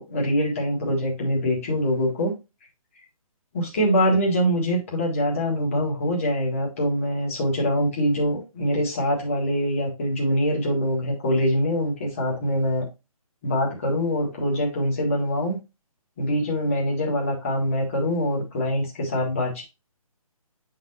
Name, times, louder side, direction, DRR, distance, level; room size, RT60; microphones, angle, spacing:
voice 1, 0.0-2.3 3.5-12.8 13.4-15.6 16.2-19.6, equal, 25° left, -2 dB, 1.6 m, -24 dB
8.9 x 3.9 x 2.7 m, 0.25 s
hypercardioid pair, 175°, 19 cm